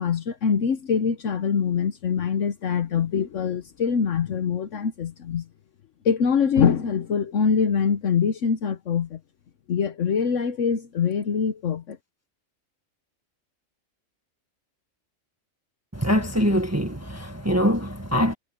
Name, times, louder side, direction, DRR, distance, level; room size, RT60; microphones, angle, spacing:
voice 1, 0.0-5.4 6.0-9.2 9.7-12.0, left 6 dB, 70° left, 1.2 m, -24 dB
voice 2, 15.9-18.3, equal, 10° right, 1.7 m, -23 dB
omnidirectional pair, 1.4 m